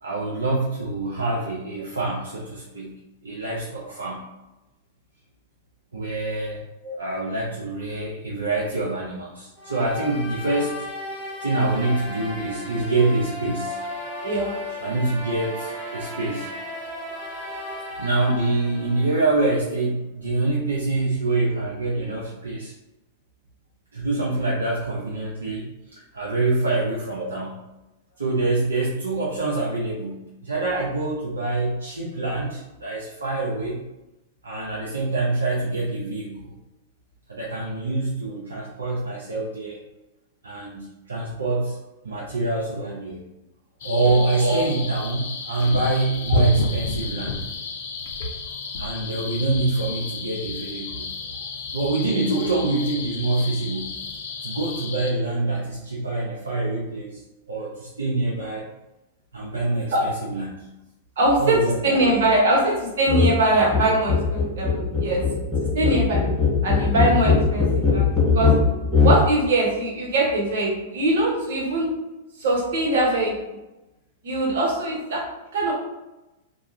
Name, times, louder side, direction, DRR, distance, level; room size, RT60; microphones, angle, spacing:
voice 1, 0.0-3.0 3.2-4.2 5.9-6.6 7.0-10.9 11.4-13.8 14.8-16.5 18.0-22.7 23.9-25.6 26.1-27.6 28.2-33.8 34.4-36.5 37.3-39.8 40.4-43.2 43.8-47.4 48.8-51.1 51.7-53.9 54.4-57.2 57.5-58.7 59.3-60.6 61.4-62.0, right 2 dB, 85° right, -5 dB, 0.5 m, -25 dB
sound 1, 9.6-19.5, left 1 dB, 15° right, 1.2 m, -35 dB
voice 2, 14.2-14.9 27.2-27.3 44.0-44.1 44.4-44.7 46.3-46.4 59.9-60.0 61.2-65.2 65.7-66.2 66.6-68.5 69.0-71.9 72.4-73.6 74.2-75.2 75.5-75.7, right 1 dB, 65° right, -2 dB, 0.9 m, -22 dB
sound 2, 43.8-55.1, left 3 dB, 65° left, 0.5 m, -31 dB
sound 3, 63.1-63.3 63.6-69.2, left 4 dB, 10° left, 0.8 m, -20 dB
2.3 x 2.2 x 3.1 m, 1.0 s
hypercardioid pair, 105°, 0 cm